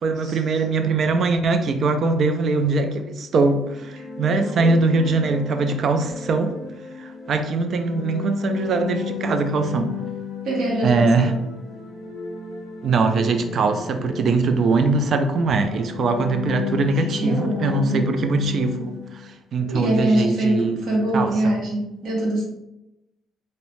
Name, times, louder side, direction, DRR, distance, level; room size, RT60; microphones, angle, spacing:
voice 1, 0.0-6.6 7.0-9.9 10.8-11.3 12.8-18.9 19.5-20.8 21.1-21.6, right 3 dB, 55° right, 7 dB, 0.3 m, -21 dB
sound 1, 3.6-19.3, left 6 dB, 55° left, 0.6 m, -34 dB
voice 2, 10.4-11.3 16.9-18.1 19.7-22.4, right 1 dB, 70° right, -3 dB, 1.0 m, -23 dB
2.6 x 2.1 x 3.0 m, 0.91 s
cardioid pair, 100°, 0 cm